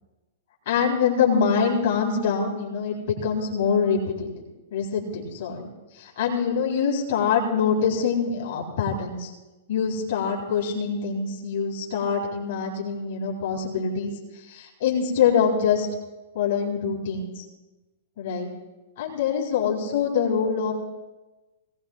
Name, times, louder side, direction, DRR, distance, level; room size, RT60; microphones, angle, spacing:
voice 1, 0.7-4.3 4.7-5.7 5.9-9.3 9.7-14.1 14.5-15.9 16.3-17.4 18.2-18.5 19.0-20.7, left 6 dB, 55° left, -3 dB, 3.6 m, -24 dB
20.5 x 18.0 x 2.4 m, 1.1 s
figure-of-eight pair, 110°, 0 cm